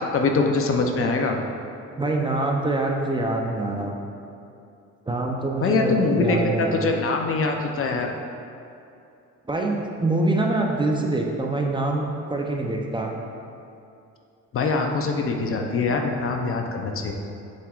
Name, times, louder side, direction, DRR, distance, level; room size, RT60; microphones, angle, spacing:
voice 1, 0.0-1.4 5.6-8.1 14.5-17.1, left 3 dB, 50° left, 2 dB, 0.7 m, -23 dB
voice 2, 2.0-4.0 5.1-6.9 9.5-13.2, right 2 dB, 15° right, 0 dB, 0.6 m, -25 dB
7.6 x 7.0 x 2.4 m, 2.7 s
cardioid pair, 115°, 29 cm